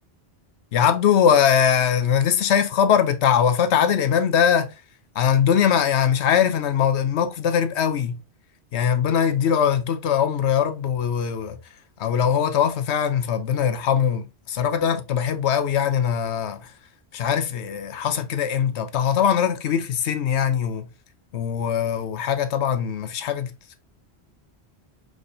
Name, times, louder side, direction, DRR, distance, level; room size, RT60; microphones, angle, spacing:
voice 1, 0.7-4.7 5.2-8.2 8.7-11.6 12.0-16.7 17.1-20.9 21.3-23.5, left 8 dB, 90° left, 1.0 m, -21 dB
4.7 x 4.2 x 2.6 m
omnidirectional pair, 1.1 m